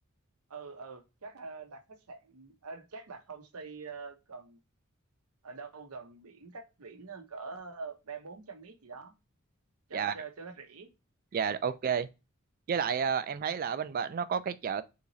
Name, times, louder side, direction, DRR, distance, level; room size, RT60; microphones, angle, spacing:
voice 1, 0.5-4.6 5.4-9.1 9.9-10.9, right 4 dB, 85° right, 0.9 m, -45 dB
voice 2, 11.3-12.1 12.7-14.8, right 7 dB, 40° right, 0.3 m, -31 dB
3.7 x 3.0 x 2.6 m
head